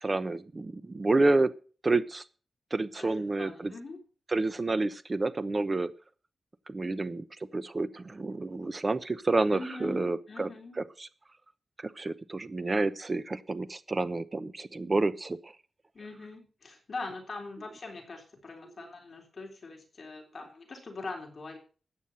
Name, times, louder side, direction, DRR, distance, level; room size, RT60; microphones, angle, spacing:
voice 1, 0.0-1.5 1.8-2.2 2.7-3.7 4.3-5.9 6.7-7.2 7.5-10.5 10.8-11.1 11.8-15.5, right 2 dB, 25° right, 14 dB, 0.9 m, -29 dB
voice 2, 3.0-4.0 9.5-10.8 15.9-21.6, left 3 dB, 40° left, 3 dB, 3.5 m, -42 dB
14.0 x 9.1 x 5.7 m, 0.38 s
wide cardioid pair, 165°, 0 cm